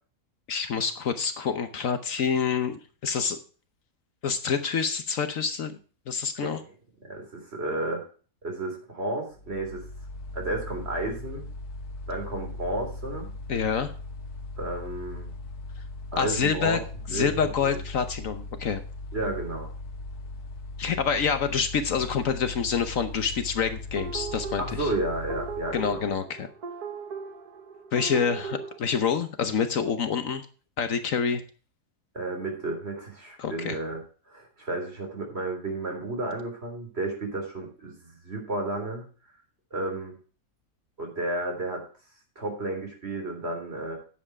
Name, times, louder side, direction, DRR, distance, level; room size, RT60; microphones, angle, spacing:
voice 1, 0.5-3.4 4.2-5.8 6.1-6.6 13.5-13.9 16.2-16.8 17.1-18.8 20.8-24.9 25.7-26.5 27.9-30.4 30.8-31.4 33.4-33.8, left 6 dB, 60° left, 9 dB, 1.2 m, -27 dB
voice 2, 7.0-8.0 8.4-9.8 10.3-11.5 12.1-13.3 14.6-15.3 16.1-16.8 17.1-17.8 19.1-19.7 24.6-26.1 32.1-34.0 34.3-39.0 39.7-40.1 41.0-41.8 42.4-44.0, right 2 dB, 40° right, 2 dB, 3.7 m, -32 dB
Mechanical fan, 9.3-26.2, left 2 dB, 80° left, 2.0 m, -39 dB
sound 1, 24.0-28.8, right 5 dB, 80° right, 2.0 m, -38 dB
10.0 x 7.8 x 4.7 m, 0.38 s
omnidirectional pair, 1.6 m